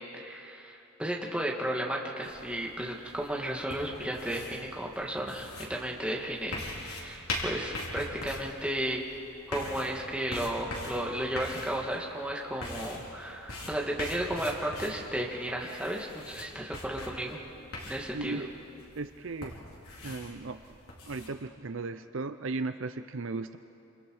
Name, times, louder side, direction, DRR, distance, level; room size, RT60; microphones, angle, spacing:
voice 1, 0.1-9.0 9.5-17.4 17.9-18.4, right 1 dB, 5° right, -2 dB, 2.1 m, -34 dB
sound 1, 2.2-21.3, left 2 dB, 80° left, 4.4 m, -42 dB
voice 2, 18.1-18.5 19.0-19.6 20.0-20.8 21.1-23.6, right 3 dB, 60° right, 10 dB, 0.6 m, -36 dB
27.5 x 27.0 x 4.9 m, 2.9 s
head